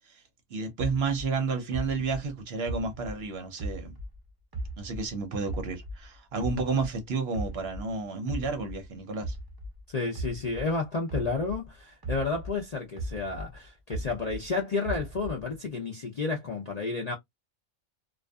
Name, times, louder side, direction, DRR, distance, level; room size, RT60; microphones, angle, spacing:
voice 1, 0.5-3.9 4.8-9.4, right 4 dB, 60° right, 0.8 m, -31 dB
sound 1, 0.8-4.2 4.5-7.0 7.3-11.7 12.0-14.5 14.8-15.5, right 1 dB, 30° right, 0.4 m, -37 dB
voice 2, 9.9-17.1, left 3 dB, 45° left, 0.5 m, -31 dB
2.5 x 2.4 x 2.2 m
omnidirectional pair, 1.3 m